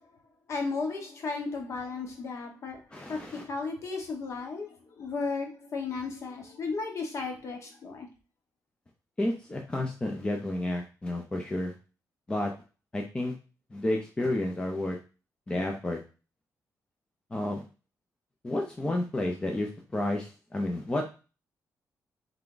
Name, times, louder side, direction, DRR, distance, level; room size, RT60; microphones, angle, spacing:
voice 1, 0.5-2.8 3.1-8.1, left 4 dB, 45° left, 3 dB, 1.1 m, -34 dB
voice 2, 2.9-3.4 9.2-11.7 12.3-12.5 12.9-13.3 13.7-15.0 15.5-16.0 17.3-17.6 18.4-21.1, left 1 dB, 15° left, 1 dB, 0.5 m, -31 dB
3.6 x 3.4 x 3.8 m, 0.34 s
wide cardioid pair, 175°, 7 cm